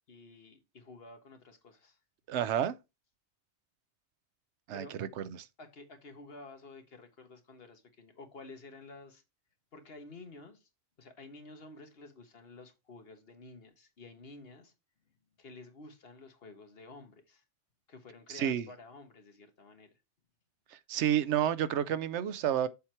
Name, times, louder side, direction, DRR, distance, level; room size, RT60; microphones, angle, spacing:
voice 1, 0.1-2.0 4.7-4.9 5.6-9.2 9.7-10.7 11.0-14.7 15.4-17.4 17.9-19.9, left 3 dB, 60° left, 1.5 m, -51 dB
voice 2, 2.3-2.8 4.7-5.2 18.3-18.6 20.9-22.7, right 10 dB, 90° right, 0.9 m, -30 dB
7.2 x 4.4 x 4.5 m
omnidirectional pair, 1.1 m